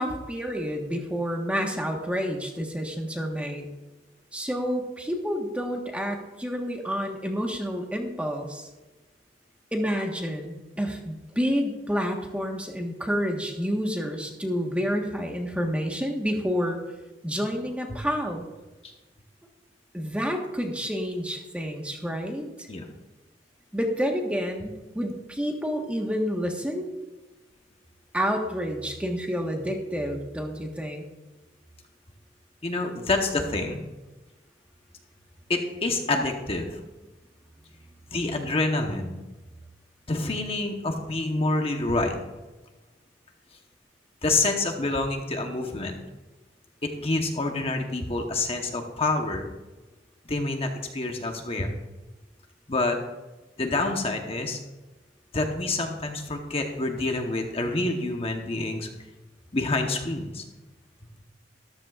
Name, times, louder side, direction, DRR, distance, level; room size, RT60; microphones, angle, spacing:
voice 1, 0.0-3.7 4.3-8.7 9.7-16.8 17.2-18.4 19.9-22.7 23.7-26.9 28.1-31.0, equal, 5° right, 2 dB, 1.3 m, -29 dB
voice 2, 32.6-33.8 35.5-36.8 38.1-39.2 40.1-42.2 44.2-46.0 46.8-49.5 50.3-51.7 52.7-53.0 53.6-54.6 55.3-58.9 59.5-60.4, left 2 dB, 35° left, 3 dB, 1.0 m, -27 dB
13.5 x 13.0 x 2.4 m, 1.1 s
head